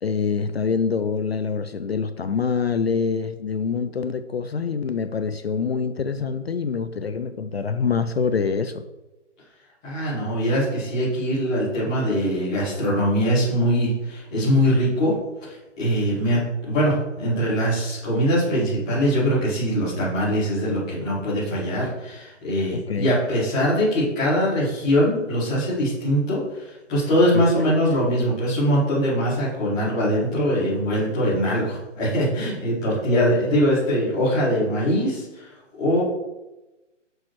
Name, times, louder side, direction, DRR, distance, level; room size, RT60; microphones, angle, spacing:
voice 1, 0.0-8.8 22.7-23.1 27.3-27.7 33.1-33.6, left 5 dB, 55° left, 10 dB, 0.5 m, -25 dB
voice 2, 9.8-15.1 15.4-35.5 35.8-36.0, equal, 5° left, -11 dB, 0.9 m, -22 dB
8.3 x 6.5 x 3.2 m, 1.0 s
hypercardioid pair, 175°, 37 cm